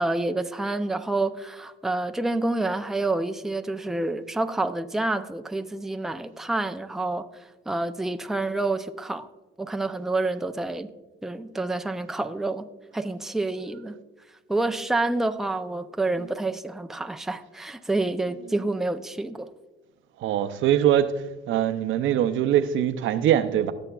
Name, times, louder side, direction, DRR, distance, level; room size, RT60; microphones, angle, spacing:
voice 1, 0.0-7.3 7.7-9.3 9.6-10.9 11.2-12.7 12.9-14.0 14.5-19.5, right 2 dB, ahead, 0.4 m, -28 dB
voice 2, 20.2-21.1 21.5-23.7, right 11 dB, 80° right, 0.6 m, -23 dB
16.5 x 7.0 x 2.3 m
cardioid pair, 90°, 20 cm